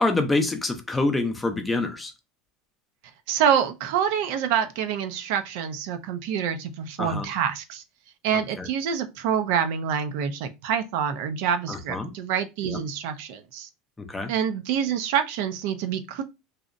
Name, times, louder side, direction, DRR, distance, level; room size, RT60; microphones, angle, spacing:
voice 1, 0.0-2.1 7.0-7.2 8.6-8.7 11.7-12.1 14.1-14.3, left 2 dB, 15° left, 0.5 m, -25 dB
voice 2, 3.3-7.8 8.2-13.7 14.3-16.2, right 8 dB, 70° right, 0.4 m, -26 dB
2.6 x 2.0 x 2.5 m
supercardioid pair, 110°, 0 cm